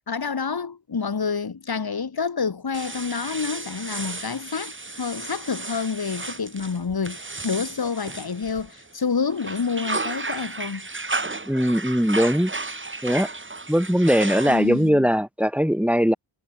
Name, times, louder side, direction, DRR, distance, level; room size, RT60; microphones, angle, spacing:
voice 1, 0.1-10.9 14.5-15.1, left 5 dB, 50° left, 1.9 m, -28 dB
sound 1, 2.7-8.9 9.3-14.9, right 3 dB, 25° right, 1.7 m, -33 dB
voice 2, 11.5-12.5 13.0-13.3 13.7-16.1, equal, 5° right, 4.5 m, -20 dB
wide cardioid pair, 85°, 47 cm